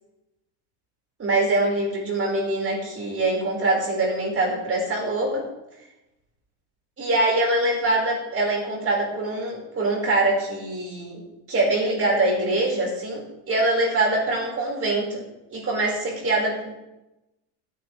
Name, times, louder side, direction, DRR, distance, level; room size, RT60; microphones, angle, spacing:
voice 1, 1.2-5.4 7.0-15.2 15.5-16.7, right 2 dB, 30° right, -2 dB, 5.6 m, -24 dB
17.5 x 9.8 x 3.5 m, 0.92 s
supercardioid pair, 120°, 45 cm